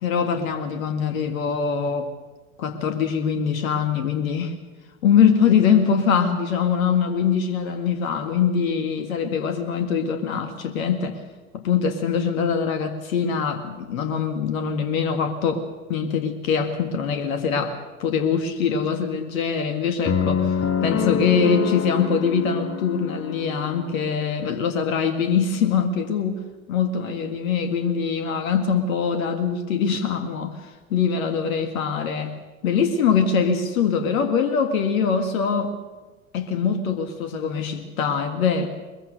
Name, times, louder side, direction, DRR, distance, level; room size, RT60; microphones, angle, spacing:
voice 1, 0.0-2.1 2.6-4.5 5.0-11.2 11.5-15.6 15.9-26.4 26.7-32.4 32.6-35.7 36.3-38.7, left 6 dB, 70° left, 7 dB, 2.1 m, -23 dB
sound 1, 20.0-24.2, left 7 dB, 30° left, 2.2 m, -26 dB
22.5 x 21.5 x 6.7 m, 1.2 s
figure-of-eight pair, 70°, 42 cm